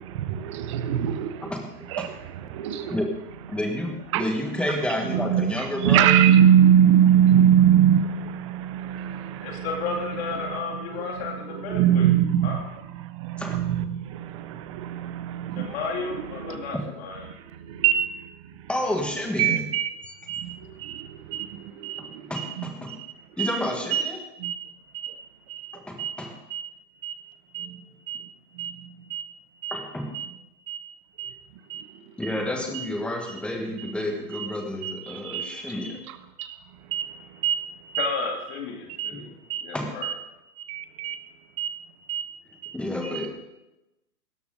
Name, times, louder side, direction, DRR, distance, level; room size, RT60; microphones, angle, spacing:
voice 1, 0.0-1.5 1.9-3.0 4.1-4.3 5.1-9.7 10.4-10.6 10.9-12.6 12.9-15.8 16.4-16.7 17.3-18.7 19.4-23.1 23.4-23.6 23.9-24.1 24.4-26.2 26.5-26.7 27.0-28.3 28.5-29.3 29.6-29.8 30.1-30.3 30.7-31.3 31.7-32.3 32.7-32.9 33.8-33.9 34.3-34.5 34.8-35.5 36.1-36.6 36.9-37.7 37.9-38.1 39.0-39.2 39.5-39.7 40.0-40.1 40.6-41.3 41.6-41.8 42.1-42.3 42.6-42.8 43.0-43.3, right 9 dB, 20° right, 0.6 m, -24 dB
voice 2, 3.5-6.2 13.4-13.6 16.5-16.8 18.7-19.6 22.0-23.0 23.3-24.2 25.7-26.3 29.7-30.1 32.2-36.0 39.1-39.2 39.7-39.9 42.7-43.3, left 1 dB, ahead, 1.6 m, -30 dB
voice 3, 9.4-12.1 12.4-12.6 15.5-17.3 38.0-39.3 39.6-40.1, left 4 dB, 40° left, 2.5 m, -32 dB
17.0 x 13.5 x 3.9 m
hypercardioid pair, 140°, 49 cm